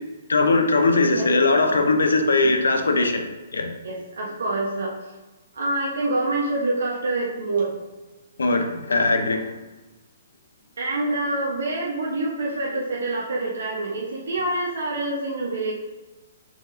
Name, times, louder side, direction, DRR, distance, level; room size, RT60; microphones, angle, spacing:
voice 1, 0.3-3.7 8.4-9.5, left 3 dB, 85° left, 5 dB, 0.7 m, -20 dB
voice 2, 3.8-5.1 5.5-7.7 10.8-15.7, right 2 dB, 75° right, -4 dB, 0.9 m, -26 dB
4.6 x 4.1 x 2.6 m, 1.2 s
hypercardioid pair, 140°, 0 cm